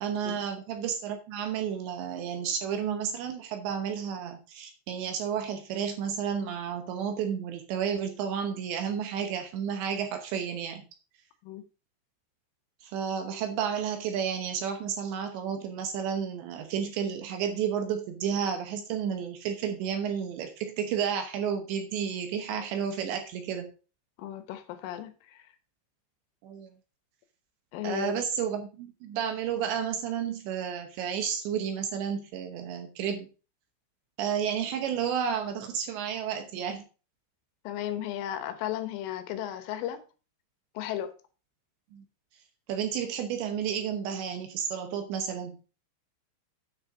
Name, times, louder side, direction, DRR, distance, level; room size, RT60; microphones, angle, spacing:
voice 1, 0.0-10.8 12.8-23.7 26.4-26.7 27.8-33.3 34.2-36.8 41.9-42.0 42.7-45.6, right 8 dB, 75° right, 3.0 m, -31 dB
voice 2, 24.2-25.4 27.7-28.2 37.7-40.0 40.8-41.1, left 11 dB, 80° left, 3.5 m, -35 dB
9.2 x 6.3 x 5.1 m
omnidirectional pair, 5.7 m